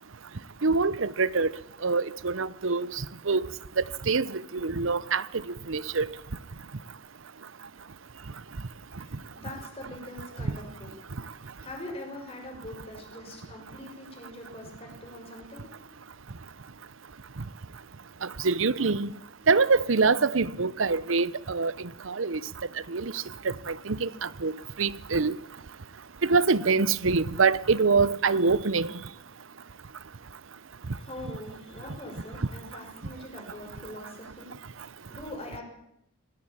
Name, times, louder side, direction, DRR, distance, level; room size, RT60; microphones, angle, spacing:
voice 1, 0.6-1.5 1.8-2.9 3.3-3.4 4.1-5.2 5.7-6.1 18.4-19.1 19.5-21.7 22.1-22.4 22.9-24.5 24.8-25.3 26.2-28.9, right 4 dB, 75° right, 0.9 m, -25 dB
voice 2, 9.0-10.9 11.2-15.9 30.7-35.6, left 1 dB, 30° left, 6.2 m, -43 dB
20.5 x 17.5 x 8.7 m
head